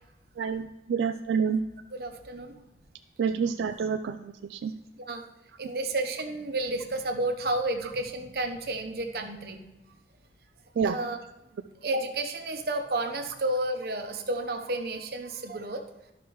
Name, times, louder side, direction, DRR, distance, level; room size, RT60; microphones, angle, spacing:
voice 1, 0.4-1.6 3.2-4.7 10.8-11.0, right 6 dB, 90° right, 8 dB, 0.3 m, -28 dB
voice 2, 1.9-2.5 3.3-3.4 5.1-5.2 5.6-9.6 10.8-11.2 11.8-15.8, right 2 dB, 60° right, 5 dB, 0.9 m, -31 dB
12.0 x 5.9 x 3.1 m, 0.96 s
head